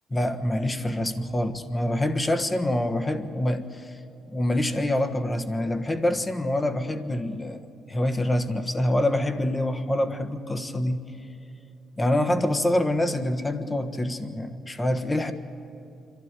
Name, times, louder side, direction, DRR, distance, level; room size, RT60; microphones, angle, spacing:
voice 1, 0.1-4.0 4.3-7.6 7.9-11.0 12.0-15.3, left 1 dB, 20° left, 8 dB, 1.3 m, -26 dB
26.5 x 12.0 x 9.6 m, 2.8 s
cardioid pair, 90°, 0 cm